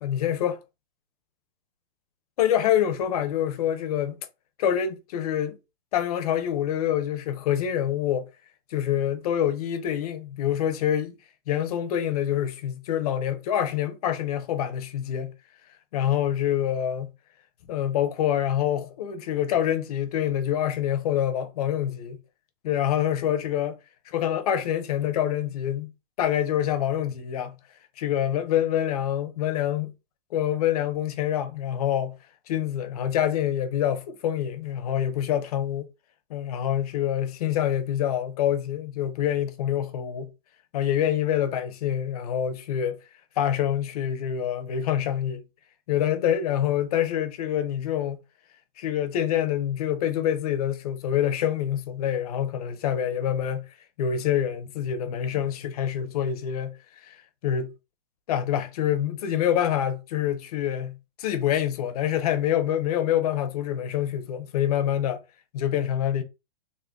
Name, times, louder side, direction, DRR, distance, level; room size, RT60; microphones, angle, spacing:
voice 1, 0.0-0.6 2.4-4.2 4.6-5.6 5.9-8.3 8.7-11.1 11.5-15.3 15.9-17.1 17.7-22.2 22.6-23.7 24.1-25.9 26.2-27.5 28.0-29.9 30.3-32.1 32.5-35.8 36.3-40.3 40.7-43.0 43.4-45.4 45.9-48.2 48.8-53.6 54.0-56.7 57.0-57.2 57.4-57.7 58.3-65.2 65.5-66.2, left 10 dB, 40° left, 0.6 m, -26 dB
3.8 x 2.2 x 3.4 m
hypercardioid pair, 155°, 29 cm